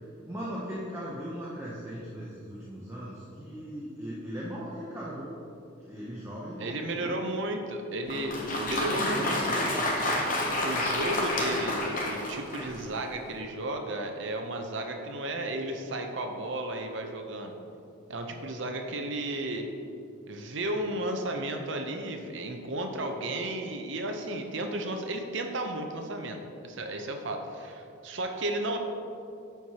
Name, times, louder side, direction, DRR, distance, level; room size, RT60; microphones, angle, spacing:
voice 1, 0.3-5.3 5.8-7.1 9.1-9.8, equal, 15° right, -7 dB, 0.7 m, -38 dB
voice 2, 6.6-9.7 10.6-17.5 18.1-19.7 20.3-26.4 26.6-28.8, right 1 dB, 60° right, 4 dB, 0.7 m, -33 dB
Applause, 8.0-12.9, left 1 dB, 40° left, 0.8 m, -29 dB
10.5 x 4.6 x 2.9 m, 2.6 s
head